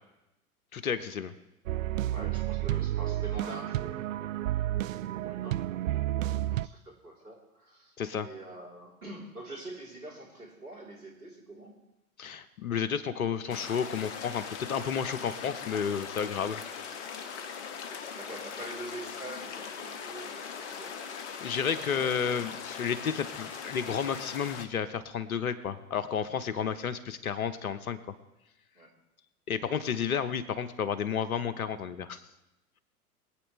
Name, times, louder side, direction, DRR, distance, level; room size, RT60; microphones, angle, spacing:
voice 1, 0.7-1.3 8.0-8.3 12.2-16.6 21.4-28.0 29.5-32.2, left 7 dB, 65° left, 13 dB, 1.1 m, -31 dB
sound 1, 1.7-6.7, right 14 dB, 60° right, 0.5 m, -31 dB
voice 2, 2.0-11.9 13.4-13.6 18.1-21.3 21.6-22.6 28.7-28.9, right 2 dB, 80° right, -2 dB, 3.9 m, -46 dB
sound 2, 13.5-24.7, left 6 dB, 50° left, 1.2 m, -40 dB
23.0 x 9.0 x 3.3 m, 0.94 s
figure-of-eight pair, 95°, 45 cm